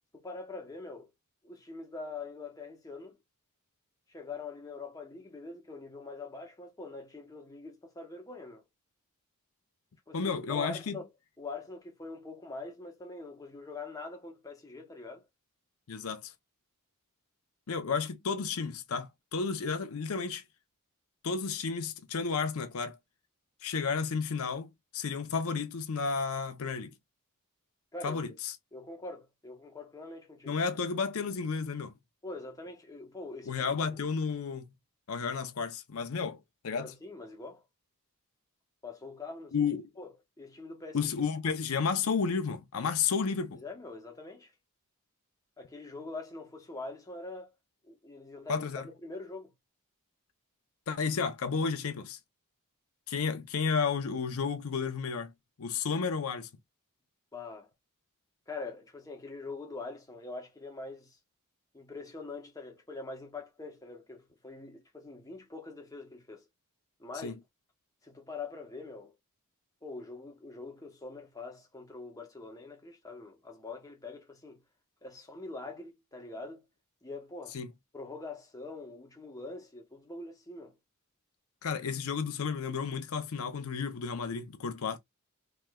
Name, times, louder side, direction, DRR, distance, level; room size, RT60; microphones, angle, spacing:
voice 1, 0.1-1.1 1.4-3.2 4.1-8.6 10.1-11.1 11.4-15.3 27.9-28.2 28.7-30.6 32.2-34.1 36.7-37.6 38.8-39.5 40.0-41.1 43.5-44.5 45.6-47.5 47.8-48.7 49.0-49.5 57.3-57.7 58.5-61.2 61.7-66.5 67.0-67.4 68.0-69.1 69.8-74.6 75.0-76.6 77.0-77.6 77.9-80.8, left 3 dB, 15° left, 0.8 m, -44 dB
voice 2, 10.1-11.0 15.9-16.3 17.7-20.4 21.2-23.0 23.6-26.9 28.0-28.5 30.5-31.9 33.5-34.7 35.1-36.9 39.5-39.8 40.9-43.6 48.5-48.9 50.9-52.2 53.1-55.3 55.6-56.5 67.2-67.3 77.5-77.7 81.6-85.0, left 5 dB, 65° left, 0.6 m, -32 dB
3.2 x 3.0 x 2.3 m
head